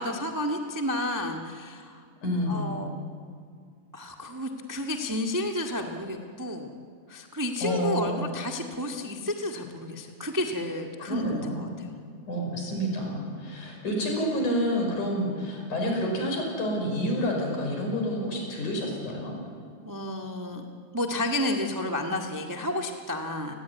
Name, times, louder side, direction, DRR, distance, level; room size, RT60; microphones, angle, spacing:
voice 1, 0.0-2.0 2.5-3.0 3.9-6.7 7.1-11.9 19.8-20.6 20.9-23.5, left 1 dB, 15° right, 3 dB, 0.7 m, -31 dB
voice 2, 2.2-2.7 7.6-8.2 11.1-11.8 12.3-19.3, equal, 65° left, 1 dB, 6.8 m, -29 dB
28.5 x 19.0 x 9.5 m, 2.1 s
omnidirectional pair, 3.7 m